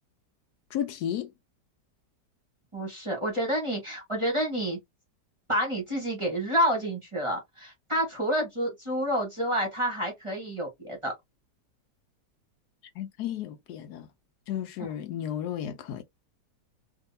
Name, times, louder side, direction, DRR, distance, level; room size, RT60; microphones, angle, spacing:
voice 1, 0.7-1.3 13.0-14.1 14.5-16.0, left 10 dB, 75° left, 1.1 m, -33 dB
voice 2, 2.7-4.8 5.5-11.1, equal, 20° right, 1.0 m, -29 dB
3.7 x 2.7 x 2.6 m
omnidirectional pair, 1.8 m